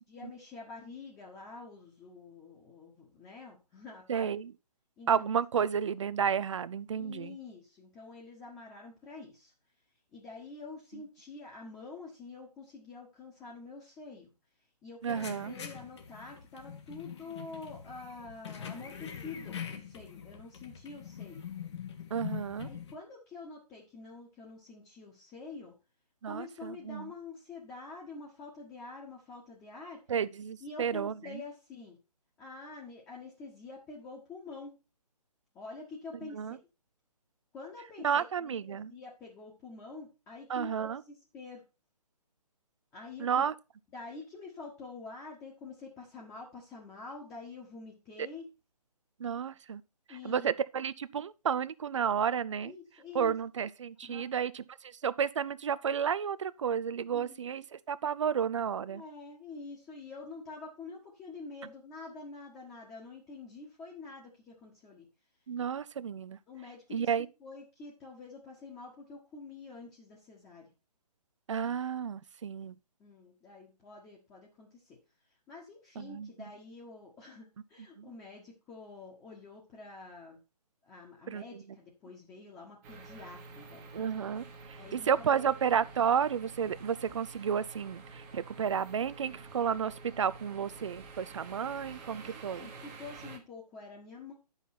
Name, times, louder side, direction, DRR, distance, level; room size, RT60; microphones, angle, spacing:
voice 1, 0.1-4.3 5.0-5.1 6.9-9.5 10.1-14.3 14.8-21.4 22.6-25.7 26.2-30.0 30.6-32.0 32.4-34.7 35.5-36.6 37.5-41.6 42.9-43.4 43.9-48.5 50.1-50.5 52.6-53.4 54.0-54.2 57.1-57.4 58.9-65.1 66.5-67.1 67.4-70.7 73.0-75.0 75.5-80.4 80.8-83.9 84.8-85.4 92.1-94.3, left 4 dB, 15° left, 1.6 m, -47 dB
voice 2, 4.1-4.5 5.1-7.4 15.0-15.6 22.1-22.7 26.2-27.1 30.1-31.4 36.3-36.6 38.0-38.9 40.5-41.0 43.2-43.5 48.2-48.3 49.2-49.8 50.1-52.7 53.1-59.0 65.5-66.4 66.9-67.3 71.5-72.8 76.0-76.3 78.0-78.1 81.3-81.6 83.9-92.7, right 7 dB, 50° right, 0.5 m, -32 dB
sound 1, 15.0-22.9, left 8 dB, 45° left, 1.7 m, -43 dB
sound 2, 82.8-93.4, right 4 dB, 20° right, 1.3 m, -49 dB
10.5 x 5.7 x 4.4 m
figure-of-eight pair, 135°, 20 cm